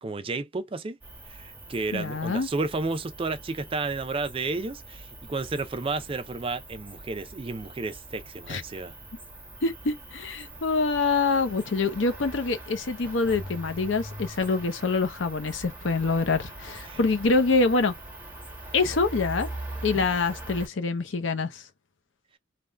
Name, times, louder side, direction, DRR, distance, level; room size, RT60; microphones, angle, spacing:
voice 1, 0.0-1.0 1.3-8.9 16.9-17.0 19.9-20.0, right 3 dB, 30° right, 0.4 m, -32 dB
Cricket, 1.0-20.7, right 1 dB, 10° right, 1.1 m, -42 dB
voice 2, 1.9-2.5 8.5-8.6 9.6-17.9 18.7-19.5 19.8-21.6, left 3 dB, 80° left, 0.7 m, -25 dB
3.4 x 2.2 x 2.4 m
head